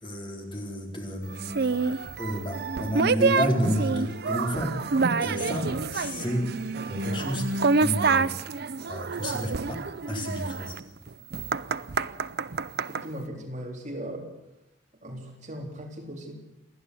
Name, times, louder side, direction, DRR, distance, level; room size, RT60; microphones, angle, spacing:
voice 1, 0.0-4.8 5.2-6.5 6.9-7.4 7.8-8.5 8.9-10.8, equal, 25° left, 0 dB, 4.3 m, -31 dB
sound 1, 1.4-13.0, right 4 dB, 60° right, 0.6 m, -27 dB
voice 2, 12.9-14.3 15.0-16.3, equal, 40° right, 0 dB, 3.9 m, -38 dB
28.0 x 11.0 x 8.3 m, 0.95 s
head